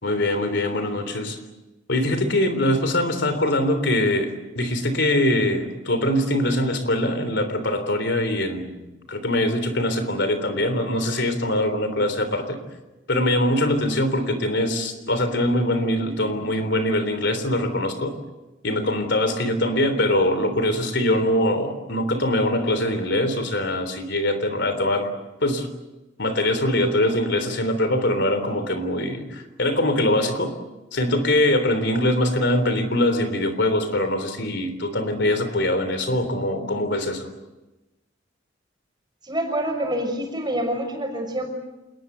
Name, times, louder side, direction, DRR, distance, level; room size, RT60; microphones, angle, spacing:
voice 1, 0.0-1.4 1.9-8.8 9.1-12.6 13.1-18.2 18.6-25.1 25.4-25.7 26.2-30.5 30.9-37.3, left 1 dB, 65° left, 10 dB, 3.4 m, -23 dB
voice 2, 39.2-41.5, right 1 dB, 25° right, 3 dB, 6.1 m, -26 dB
28.0 x 21.0 x 8.0 m, 1.1 s
head